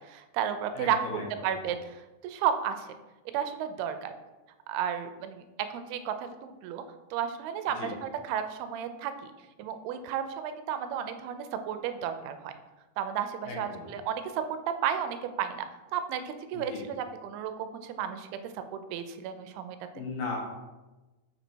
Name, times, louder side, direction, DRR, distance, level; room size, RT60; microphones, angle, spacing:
voice 1, 0.1-1.0 1.3-2.0 2.2-2.9 3.3-4.1 4.7-6.8 7.1-9.3 9.6-12.5 13.0-15.7 15.9-18.3 18.7-19.8, right 8 dB, 90° right, 9 dB, 2.5 m, -33 dB
voice 2, 0.7-1.2 7.8-7.9 13.4-13.8 16.5-16.8 19.9-20.4, left 4 dB, 70° left, -1 dB, 2.7 m, -36 dB
6.0 x 4.0 x 4.4 m, 1.1 s
omnidirectional pair, 4.4 m